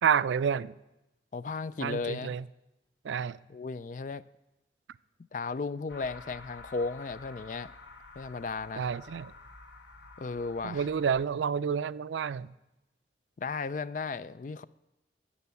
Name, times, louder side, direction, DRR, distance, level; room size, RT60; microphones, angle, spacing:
voice 1, 0.0-0.8 1.8-2.4 3.0-3.4 8.8-9.3 10.6-12.5, right 7 dB, 90° right, 0.4 m, -29 dB
voice 2, 1.3-2.3 3.5-4.2 5.3-7.7 8.2-8.9 10.2-10.9 13.4-14.6, left 4 dB, 45° left, 0.3 m, -35 dB
sound 1, 5.9-11.2, left 3 dB, 85° left, 1.7 m, -50 dB
12.5 x 7.3 x 8.2 m
head